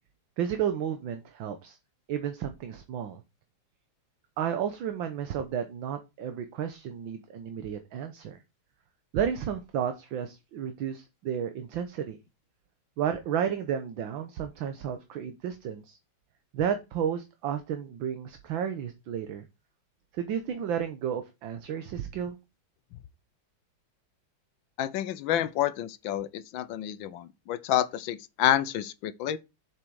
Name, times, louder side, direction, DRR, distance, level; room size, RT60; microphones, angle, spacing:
voice 1, 0.4-1.8 2.1-3.2 4.4-8.4 9.1-12.2 13.0-16.0 16.5-19.5 20.1-22.4, right 8 dB, 70° right, 1.7 m, -32 dB
voice 2, 24.8-29.4, left 12 dB, 75° left, 1.4 m, -29 dB
7.4 x 6.6 x 4.7 m
omnidirectional pair, 2.2 m